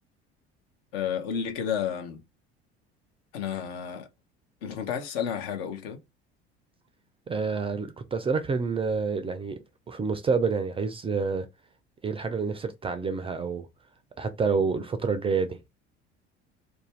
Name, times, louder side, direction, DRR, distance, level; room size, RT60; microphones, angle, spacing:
voice 1, 0.9-2.2 3.3-4.1 4.6-6.0, left 8 dB, 65° left, 0.7 m, -31 dB
voice 2, 7.3-9.6 9.9-11.5 12.0-13.7 14.2-15.6, right 5 dB, 15° right, 0.4 m, -28 dB
2.5 x 2.2 x 3.1 m
figure-of-eight pair, 65°, 33 cm